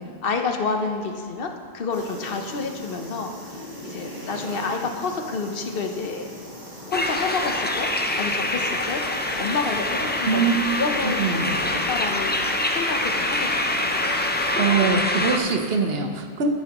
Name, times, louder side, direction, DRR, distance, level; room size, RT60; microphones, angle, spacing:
voice 1, 0.2-1.5 1.7-6.3 6.9-9.0 9.4-10.5 10.8-11.5 11.9-13.8, left 4 dB, 65° left, 5 dB, 0.9 m, -29 dB
sound 1, 1.9-14.6, left 1 dB, 45° right, 2.3 m, -40 dB
sound 2, 6.9-15.4, left 1 dB, 20° left, 0.3 m, -25 dB
voice 2, 10.2-10.5 11.0-11.6 14.0-14.2 14.6-16.5, right 5 dB, 75° right, 5 dB, 1.0 m, -23 dB
13.0 x 8.8 x 3.0 m, 2.1 s
omnidirectional pair, 1.0 m